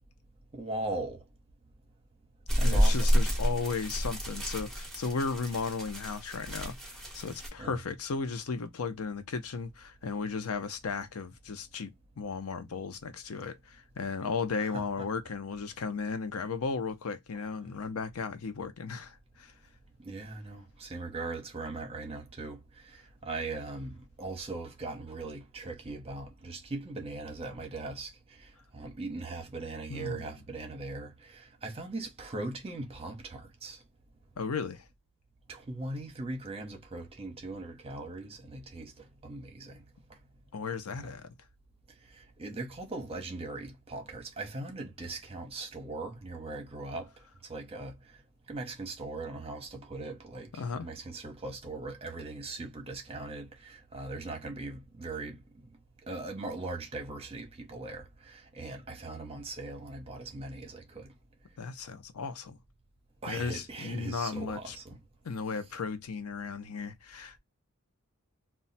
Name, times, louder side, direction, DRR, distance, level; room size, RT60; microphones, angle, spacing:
voice 1, 0.5-1.2 2.6-3.1 7.6-7.8 14.6-15.1 20.0-33.8 35.5-39.8 41.0-41.1 42.1-47.1 47.5-48.0 48.5-55.4 56.0-61.1 63.2-65.0, right 2 dB, 25° right, 0.8 m, -40 dB
sound 1, 2.5-7.5, equal, ahead, 0.9 m, -29 dB
voice 2, 2.6-19.5 29.9-30.3 34.4-34.8 40.5-41.3 50.6-50.9 61.6-62.6 63.3-64.8 65.2-67.4, left 5 dB, 80° left, 0.6 m, -35 dB
2.3 x 2.1 x 3.9 m
head